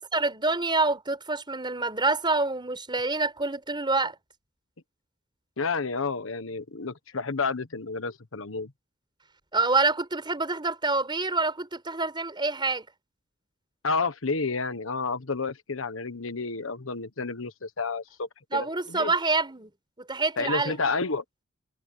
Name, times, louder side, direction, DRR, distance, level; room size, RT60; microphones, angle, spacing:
voice 1, 0.1-4.2 9.5-12.9 18.5-19.7 20.1-20.8, right 3 dB, 25° right, 4.9 m, -26 dB
voice 2, 5.6-8.7 13.8-19.1 20.4-21.2, left 4 dB, 80° left, 1.3 m, -30 dB
head